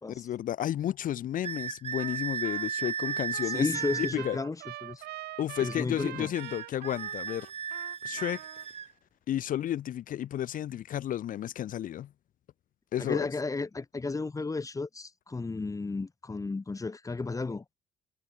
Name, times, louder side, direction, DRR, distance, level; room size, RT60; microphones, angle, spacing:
voice 1, 0.1-3.7 4.0-4.4 5.4-7.5 8.0-8.4 9.3-12.1 12.9-13.3, left 11 dB, 55° left, 1.0 m, -32 dB
sound 1, 1.4-4.2 6.3-8.9, right 7 dB, 40° right, 2.3 m, -35 dB
Trumpet, 2.0-2.2 2.4-8.7, right 16 dB, 80° right, 2.5 m, -44 dB
voice 2, 3.5-4.6 4.8-5.0 5.6-6.3 13.0-17.7, left 3 dB, 20° left, 3.0 m, -33 dB
cardioid pair, 105°, 16 cm